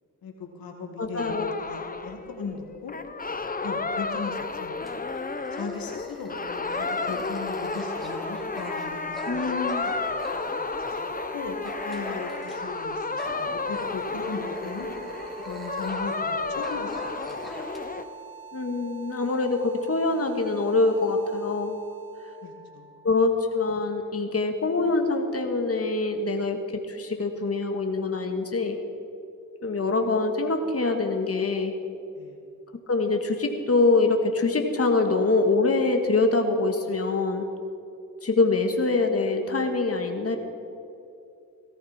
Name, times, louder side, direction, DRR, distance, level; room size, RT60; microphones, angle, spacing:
voice 1, 0.2-2.9 3.6-5.0 5.5-9.9 10.9-11.0 11.3-14.9 15.4-17.0 17.2-17.5 22.4-23.0 32.2-32.4, left 4 dB, 90° left, 2 dB, 2.2 m, -38 dB
voice 2, 1.0-1.5 9.3-9.8 18.5-21.8 23.0-28.8 29.6-31.7 32.9-37.4 38.2-40.4, left 3 dB, 45° left, 4 dB, 1.8 m, -24 dB
sound 1, 1.2-18.0, left 3 dB, 25° left, 0.9 m, -32 dB
Dog, 4.8-11.0 11.6-12.8 13.2-16.3 16.6-17.8, left 1 dB, ahead, 3.0 m, -42 dB
sound 2, 7.3-24.2, right 7 dB, 35° right, 1.4 m, -45 dB
18.0 x 14.0 x 4.4 m, 2.6 s
cardioid pair, 55°, 34 cm